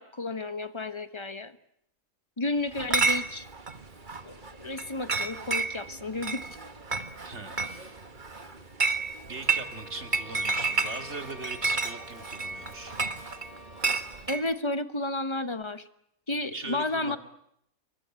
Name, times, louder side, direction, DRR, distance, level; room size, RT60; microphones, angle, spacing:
voice 1, 0.0-1.5 2.4-3.5 4.2-6.6 14.3-15.8 16.3-17.2, left 2 dB, 20° left, 12 dB, 1.1 m, -32 dB
Chatter / Chink clink, 2.7-14.4, right 4 dB, 35° right, 1.7 m, -31 dB
voice 2, 7.2-8.0 9.2-13.0 16.5-17.2, right 3 dB, 55° right, 7 dB, 2.8 m, -40 dB
Bowed string instrument, 9.4-14.2, equal, 40° left, 2.8 m, -50 dB
28.0 x 23.5 x 8.9 m, 0.74 s
omnidirectional pair, 1.5 m